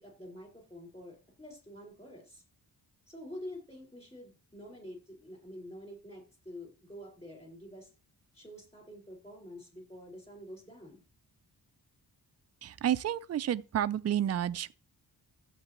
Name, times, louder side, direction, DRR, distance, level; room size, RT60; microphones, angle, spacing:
voice 1, 0.0-2.4 3.1-7.9 8.3-11.0, left 1 dB, 15° left, 5.0 m, -47 dB
voice 2, 12.6-14.7, right 10 dB, 45° right, 0.4 m, -30 dB
13.5 x 8.3 x 3.0 m
wide cardioid pair, 150°, 38 cm